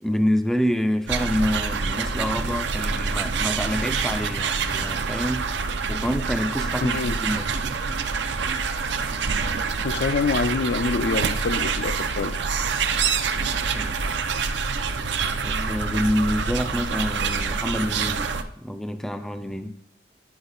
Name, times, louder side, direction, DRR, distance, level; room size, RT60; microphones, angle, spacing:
voice 1, 0.0-5.5 5.9-7.5 13.7-14.1 15.4-19.7, equal, ahead, 0.3 m, -27 dB
sound 1, 1.1-18.4, right 5 dB, 75° right, 0.6 m, -26 dB
voice 2, 6.8-7.2 9.8-12.4, left 4 dB, 70° left, 0.4 m, -26 dB
9.6 x 5.5 x 4.0 m
head